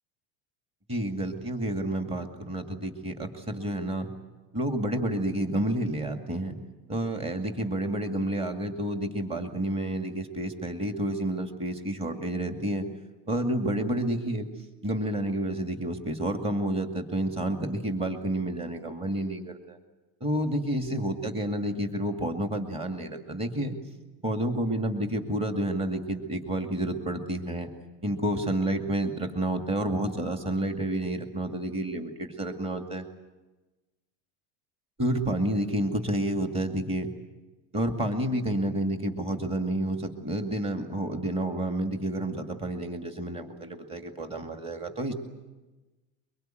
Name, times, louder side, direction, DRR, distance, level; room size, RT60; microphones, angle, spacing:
voice 1, 0.9-4.1 4.5-6.6 6.9-12.9 13.3-14.5 14.8-19.8 20.2-23.8 24.2-27.7 28.0-33.1 35.0-37.1 37.7-45.1, right 1 dB, 15° right, 5 dB, 2.3 m, -30 dB
24.0 x 23.5 x 9.2 m, 1.1 s
cardioid pair, 160°, 36 cm